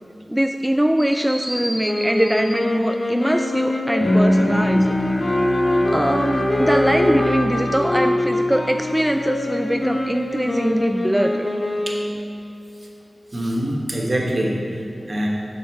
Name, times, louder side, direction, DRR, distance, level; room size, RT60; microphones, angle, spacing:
voice 1, 0.3-4.9 5.9-11.5, equal, 10° right, 6 dB, 0.3 m, -22 dB
sound 1, 1.8-12.2, left 1 dB, 65° left, 1.1 m, -24 dB
Bowed string instrument, 4.0-9.1, left 1 dB, 40° left, 1.2 m, -23 dB
voice 2, 13.3-15.3, right 1 dB, 50° right, -1 dB, 1.4 m, -24 dB
7.0 x 6.4 x 4.5 m, 2.8 s
cardioid pair, 40°, 0 cm